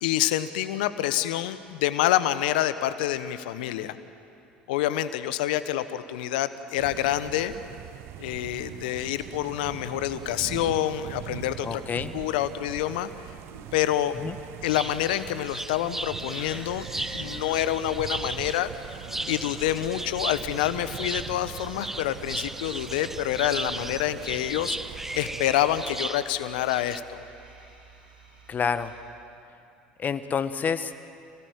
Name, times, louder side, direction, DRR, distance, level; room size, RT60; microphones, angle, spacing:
voice 1, 0.0-4.0 4.7-7.5 8.2-13.1 13.7-14.2 14.6-16.9 17.1-18.7 19.3-24.8 25.1-27.2, left 13 dB, 70° left, 13 dB, 1.1 m, -27 dB
sound 1, 6.8-26.0, right 13 dB, 55° right, 0.8 m, -42 dB
voice 2, 11.6-12.1 14.1-14.4 28.5-28.9 30.0-31.0, left 6 dB, 35° left, 12 dB, 1.3 m, -28 dB
sound 2, 13.4-29.0, right 3 dB, 90° right, 4.7 m, -51 dB
sound 3, 14.7-27.0, right 1 dB, 5° right, 0.6 m, -36 dB
28.0 x 18.0 x 9.2 m, 2.7 s
hypercardioid pair, 70°, 5 cm